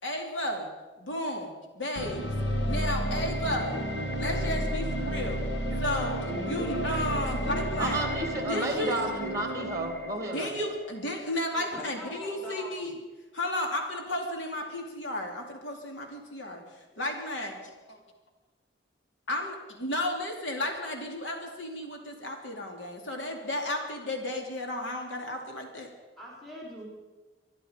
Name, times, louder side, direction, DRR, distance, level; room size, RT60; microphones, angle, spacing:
voice 1, 0.0-0.7 1.0-2.2 2.7-3.8 4.2-5.5 5.8-6.2 6.5-8.0 8.5-8.9 10.3-12.9 13.3-17.6 17.9-18.0 19.3-25.9, left 1 dB, 85° left, 2 dB, 2.7 m, -33 dB
sound 1, 2.0-11.0, equal, 65° left, 1.8 m, -32 dB
voice 2, 6.3-7.7 11.5-13.0 26.2-26.9, left 1 dB, ahead, -3 dB, 4.4 m, -41 dB
voice 3, 7.8-10.5, right 2 dB, 15° right, 4 dB, 2.6 m, -32 dB
25.0 x 11.0 x 5.1 m, 1.2 s
head